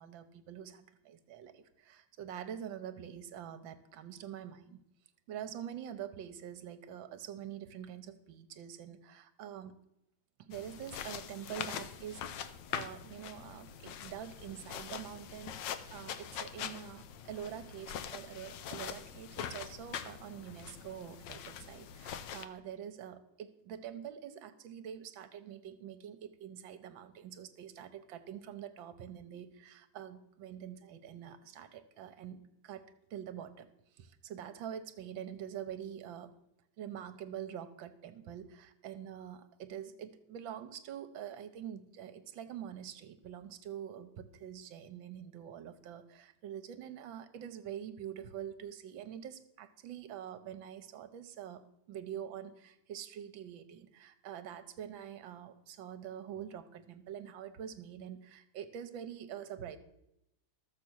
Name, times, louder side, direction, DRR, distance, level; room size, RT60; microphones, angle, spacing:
voice 1, 0.0-4.8 5.3-9.8 10.4-12.3 12.7-32.8 33.1-33.7 33.9-36.3 36.8-51.6 51.9-59.8, right 9 dB, 75° right, 11 dB, 1.6 m, -45 dB
sound 1, 10.5-22.5, left 9 dB, 70° left, 1.3 m, -43 dB
13.5 x 7.1 x 6.2 m, 0.82 s
omnidirectional pair, 2.3 m